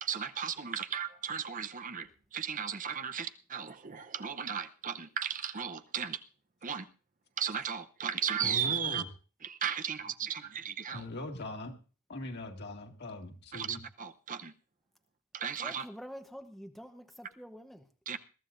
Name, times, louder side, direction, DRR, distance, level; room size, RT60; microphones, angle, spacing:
voice 1, 0.0-6.2 6.6-6.9 7.4-9.0 9.4-11.0 13.5-14.5 15.3-15.8 18.1-18.2, right 7 dB, 40° right, 10 dB, 0.8 m, -35 dB
voice 2, 8.4-9.1 10.9-11.7 12.1-13.8, left 1 dB, 50° left, 2 dB, 2.1 m, -40 dB
voice 3, 15.6-17.9, equal, ahead, 5 dB, 0.9 m, -47 dB
21.5 x 14.5 x 2.6 m, 0.37 s
head